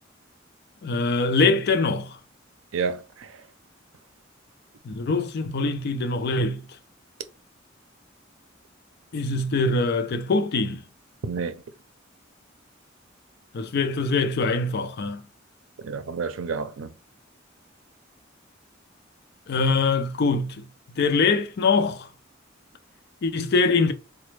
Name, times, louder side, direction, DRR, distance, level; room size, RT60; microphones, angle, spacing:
voice 1, 0.8-2.2 4.8-6.6 9.1-10.8 13.5-15.2 19.5-20.6 21.0-22.1 23.2-23.9, left 3 dB, 55° left, 0.4 m, -23 dB
voice 2, 2.7-3.4 11.2-11.6 15.8-16.9, right 5 dB, 90° right, 0.5 m, -30 dB
4.0 x 2.1 x 3.2 m
head